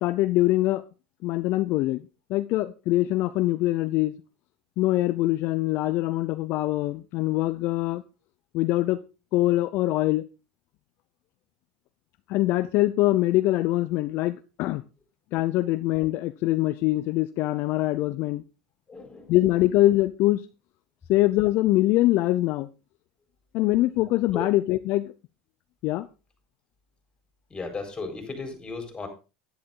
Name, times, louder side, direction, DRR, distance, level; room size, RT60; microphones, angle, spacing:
voice 1, 0.0-0.8 1.2-2.0 2.3-4.1 4.8-8.0 8.5-9.0 9.3-10.2 12.3-14.8 15.3-18.4 19.3-20.5 21.1-22.7 23.5-25.1 25.8-26.1, left 17 dB, 60° left, 12 dB, 0.6 m, -23 dB
voice 2, 18.9-19.5 24.3-24.5 27.5-29.1, left 3 dB, 20° left, 6 dB, 4.3 m, -36 dB
10.5 x 10.5 x 3.8 m, 0.30 s
supercardioid pair, 100°, 4 cm